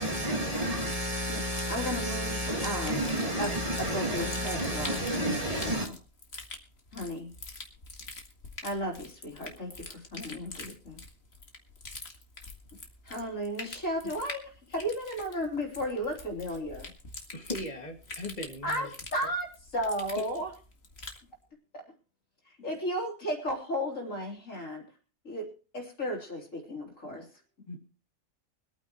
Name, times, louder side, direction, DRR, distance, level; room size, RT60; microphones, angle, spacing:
voice 1, 0.0-5.9, equal, 25° right, 1.9 m, -31 dB
voice 2, 1.7-3.0 3.4-3.5 3.8-5.9 6.9-7.3 8.6-11.0 13.0-16.9 18.6-20.5 21.7-21.9 22.6-24.8 25.2-27.3, equal, 70° left, 4.0 m, -34 dB
sound 1, 3.0-21.2, left 3 dB, 50° left, 2.2 m, -45 dB
voice 3, 17.3-18.9 19.2-19.3 20.2-20.3 24.5-24.6 27.7-27.8, left 1 dB, 30° left, 2.4 m, -38 dB
24.5 x 9.3 x 3.1 m
omnidirectional pair, 1.4 m